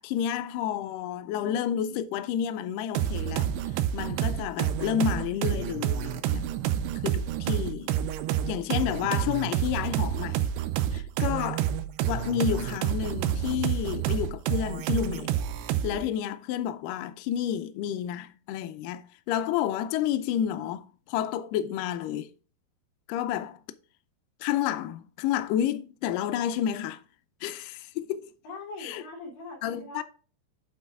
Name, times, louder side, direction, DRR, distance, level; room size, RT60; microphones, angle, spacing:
voice 1, 0.0-3.5 3.9-6.4 7.0-7.9 8.5-10.5 10.9-11.7 12.0-15.4 15.8-22.3 23.1-23.6 24.4-27.0 27.4-28.3 28.8-29.0 29.6-30.0, left 10 dB, 85° left, 1.9 m, -30 dB
sound 1, 3.0-16.1, right 11 dB, 85° right, 2.7 m, -29 dB
voice 2, 28.4-30.0, left 3 dB, 60° left, 4.2 m, -41 dB
8.5 x 4.1 x 4.6 m
omnidirectional pair, 4.6 m